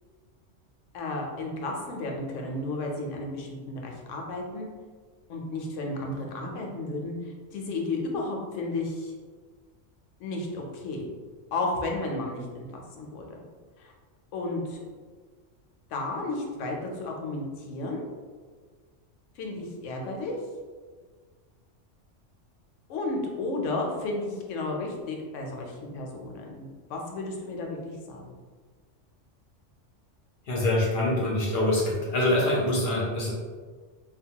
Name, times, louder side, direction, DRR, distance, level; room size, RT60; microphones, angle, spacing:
voice 1, 0.9-4.7 5.3-7.1 7.5-9.1 10.2-11.1 11.5-13.4 13.8-13.9 14.3-14.8 15.9-18.1 19.4-20.3 22.9-28.2, left 2 dB, 75° left, 0 dB, 0.9 m, -33 dB
voice 2, 30.5-33.3, left 1 dB, 60° left, -4 dB, 0.6 m, -25 dB
2.8 x 2.1 x 2.7 m, 1.5 s
omnidirectional pair, 1.3 m